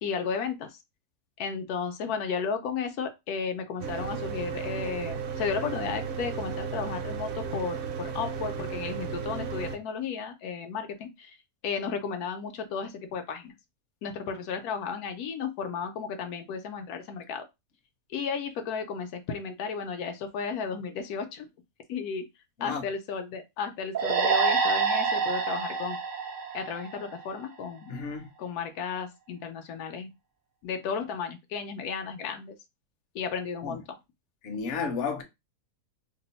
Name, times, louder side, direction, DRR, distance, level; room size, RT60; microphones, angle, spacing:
voice 1, 0.0-0.7 1.4-11.4 11.6-13.5 14.0-17.4 18.1-21.5 21.9-22.3 22.6-26.0 26.5-27.9 28.4-30.1 30.6-32.5 33.1-34.0, left 6 dB, 85° left, 1.1 m, -34 dB
Mechanical fan, 3.8-9.8, right 6 dB, 60° right, 0.7 m, -34 dB
sound 1, 23.9-27.4, right 5 dB, 80° right, 0.4 m, -27 dB
voice 2, 27.9-28.3 33.6-33.8 34.4-35.2, left 5 dB, 60° left, 0.9 m, -32 dB
2.9 x 2.0 x 3.9 m
omnidirectional pair, 1.6 m